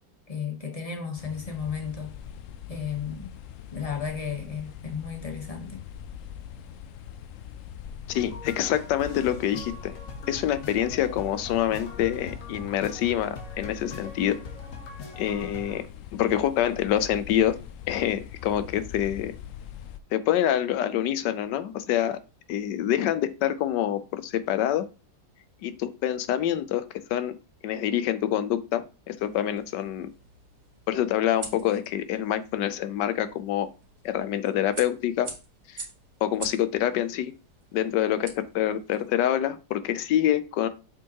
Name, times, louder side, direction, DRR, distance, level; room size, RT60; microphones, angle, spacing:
voice 1, 0.3-2.1 2.7-3.3 3.7-5.8, left 6 dB, 25° left, 1.0 m, -33 dB
sound 1, 1.2-20.0, left 9 dB, 70° left, 0.7 m, -43 dB
voice 2, 8.1-10.0 10.3-14.4 15.2-17.6 17.9-19.3 20.1-22.2 22.5-24.9 25.6-26.8 27.1-27.4 27.6-30.1 30.9-33.7 34.0-35.3 35.7-35.8 36.2-37.3 37.7-40.7, left 11 dB, 85° left, 1.3 m, -26 dB
sound 2, 8.1-15.8, left 3 dB, 55° left, 1.5 m, -42 dB
sound 3, 29.2-39.1, right 4 dB, 70° right, 2.0 m, -46 dB
7.3 x 5.1 x 2.9 m
omnidirectional pair, 1.8 m